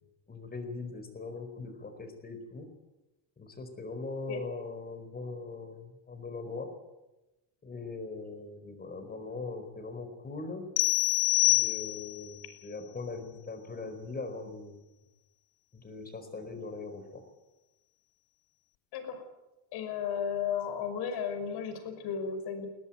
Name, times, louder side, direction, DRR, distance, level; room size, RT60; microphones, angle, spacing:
voice 1, 0.3-2.7 3.4-6.7 7.6-10.6 11.4-14.8 15.7-17.3, left 3 dB, 20° left, 7 dB, 4.7 m, -40 dB
sound 1, 10.8-12.3, left 26 dB, 85° left, 0.7 m, -26 dB
voice 2, 19.7-22.7, left 7 dB, 70° left, 7 dB, 5.6 m, -34 dB
21.5 x 18.0 x 9.2 m, 1.0 s
cardioid pair, 135°, 42 cm